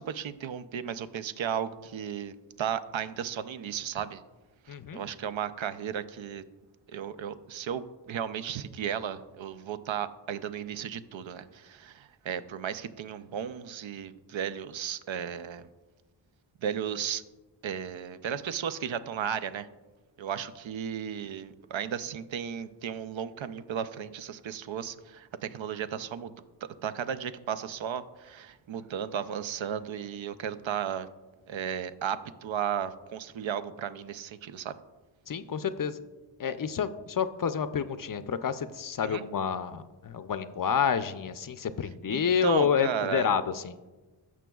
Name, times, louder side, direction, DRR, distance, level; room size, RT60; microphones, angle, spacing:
voice 1, 0.0-4.2 4.7-6.4 6.9-15.7 16.6-17.2 17.6-19.7 20.2-26.3 26.8-31.1 31.5-34.8 39.0-39.2 42.0-43.3, right 8 dB, 80° right, 13 dB, 0.5 m, -34 dB
voice 2, 4.7-5.0 35.3-36.0 36.4-43.8, left 7 dB, 50° left, 12 dB, 0.4 m, -29 dB
15.0 x 6.1 x 2.3 m, 1.2 s
wide cardioid pair, 95°, 46 cm